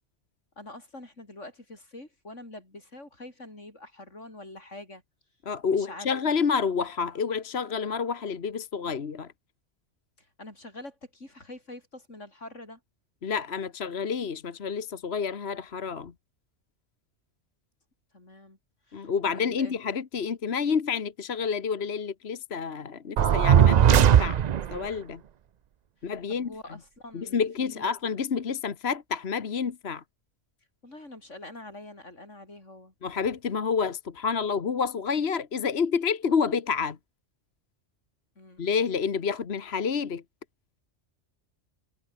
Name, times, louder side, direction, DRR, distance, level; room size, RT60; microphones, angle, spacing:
voice 1, 0.6-5.0 5.7-6.1 10.2-12.8 18.1-18.6 18.9-19.8 26.0-27.9 30.8-32.9 38.4-38.8, left 2 dB, 90° left, 6.7 m, -45 dB
voice 2, 5.4-9.3 13.2-16.1 18.9-24.4 24.7-25.2 26.0-26.5 27.1-30.0 33.0-37.0 38.6-40.2, left 6 dB, 60° left, 1.5 m, -29 dB
sound 1, 23.2-24.8, right 9 dB, 55° right, 0.5 m, -18 dB
omnidirectional pair, 1.2 m